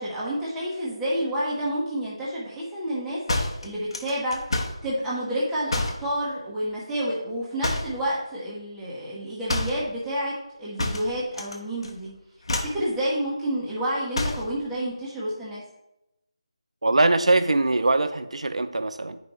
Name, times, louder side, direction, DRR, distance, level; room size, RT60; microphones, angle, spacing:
voice 1, 0.0-3.2 3.6-4.4 4.8-10.3 10.6-12.1 12.5-15.6, right 1 dB, 5° right, -10 dB, 1.2 m, -29 dB
sound 1, 3.3-4.9 5.7-6.1 7.6-8.0 9.5-9.9 10.8-11.6 11.8-12.1 12.4-12.8 14.1-14.5, left 2 dB, 60° left, 1.1 m, -28 dB
voice 2, 16.8-19.2, right 2 dB, 90° right, 11 dB, 0.5 m, -22 dB
9.2 x 5.2 x 3.1 m, 0.87 s
figure-of-eight pair, 170°, 3 cm